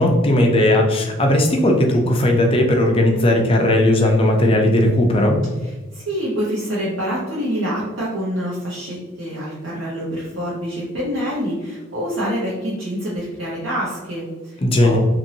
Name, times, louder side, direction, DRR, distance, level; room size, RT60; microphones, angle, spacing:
voice 1, 0.0-5.4 14.6-15.0, left 1 dB, 25° left, 2 dB, 0.4 m, -16 dB
voice 2, 5.6-15.0, equal, 70° right, -7 dB, 0.7 m, -26 dB
3.0 x 2.6 x 2.7 m, 1.2 s
head